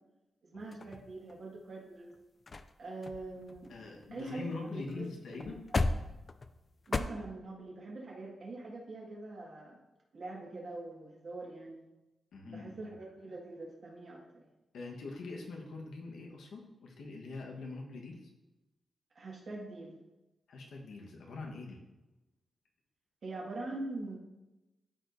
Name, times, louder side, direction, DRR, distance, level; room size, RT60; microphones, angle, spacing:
voice 1, 0.4-2.2 2.8-3.7 4.1-5.1 6.9-9.8 10.1-11.8 12.4-14.5 19.1-20.0 23.2-24.2, right 2 dB, 50° right, -3 dB, 1.8 m, -43 dB
sound 1, 0.7-1.6 2.1-2.2 2.5-2.7 3.0-4.6 4.9-5.0 5.3-7.0, left 3 dB, 35° left, 0.4 m, -36 dB
voice 2, 3.7-5.6 12.3-12.9 14.7-18.2 20.5-21.8, left 3 dB, 90° left, 0 dB, 1.3 m, -43 dB
13.0 x 4.5 x 2.7 m, 1.0 s
wide cardioid pair, 145°, 0 cm